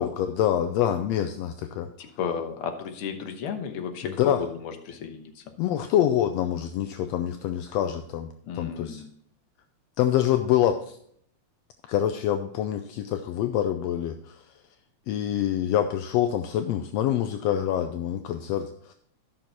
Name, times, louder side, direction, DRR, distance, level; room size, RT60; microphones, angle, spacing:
voice 1, 0.0-1.9 4.0-4.4 5.6-9.0 10.0-11.0 11.9-14.4 15.1-18.9, left 11 dB, 80° left, 8 dB, 1.6 m, -26 dB
voice 2, 2.0-5.4 8.4-9.1, left 7 dB, 60° left, 6 dB, 1.7 m, -33 dB
13.0 x 6.2 x 4.0 m, 0.65 s
omnidirectional pair, 3.3 m